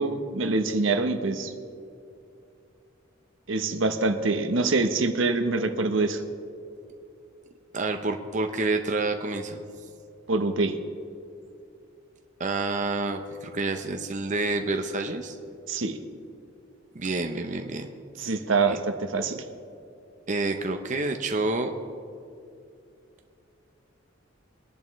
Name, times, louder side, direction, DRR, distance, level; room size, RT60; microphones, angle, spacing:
voice 1, 0.0-1.5 3.5-6.2 10.3-10.8 15.7-16.0 18.2-19.4, right 3 dB, 70° right, 7 dB, 1.0 m, -25 dB
voice 2, 7.7-9.6 12.4-15.4 16.9-17.9 18.2-18.3 18.7-18.8 20.3-21.7, right 3 dB, 40° right, 5 dB, 0.7 m, -28 dB
22.5 x 10.5 x 3.2 m, 2.5 s
head